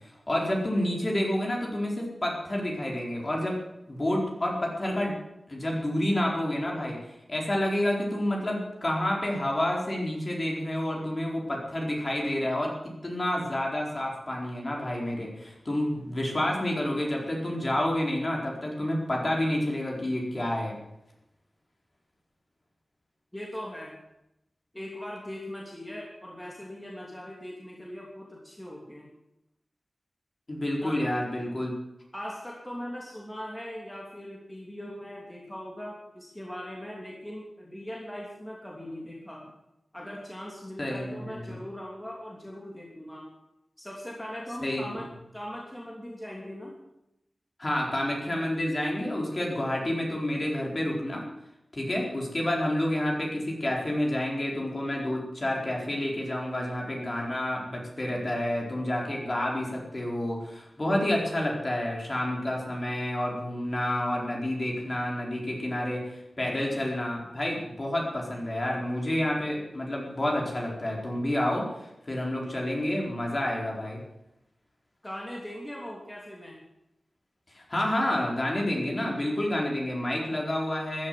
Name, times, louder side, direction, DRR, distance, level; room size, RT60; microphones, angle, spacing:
voice 1, 0.3-3.5 3.9-5.1 5.5-7.0 7.3-12.7 13.0-20.8 30.5-31.7 40.8-41.6 44.6-44.8 47.6-51.2 51.7-74.0 77.5-81.1, left 1 dB, 35° left, -2 dB, 4.4 m, -29 dB
voice 2, 23.3-23.9 24.7-29.1 30.8-31.0 32.1-39.5 39.9-43.3 43.8-45.1 45.3-46.7 75.0-76.6, equal, 10° left, -3 dB, 3.0 m, -40 dB
15.0 x 11.0 x 7.7 m, 0.87 s
wide cardioid pair, 105°, 0 cm